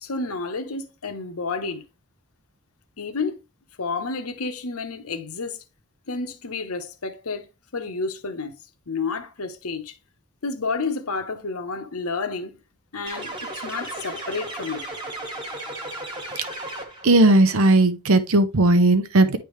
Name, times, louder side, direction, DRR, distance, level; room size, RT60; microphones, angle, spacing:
voice 1, 0.0-1.8 3.0-3.3 3.8-5.6 6.1-7.5 7.7-8.5 8.9-10.0 10.4-12.5 12.9-14.9, left 4 dB, 80° left, 1.0 m, -30 dB
sound 1, 13.1-17.2, right 1 dB, 20° right, 1.4 m, -34 dB
voice 2, 17.0-19.4, right 2 dB, 70° right, 0.7 m, -17 dB
10.0 x 3.5 x 3.2 m
head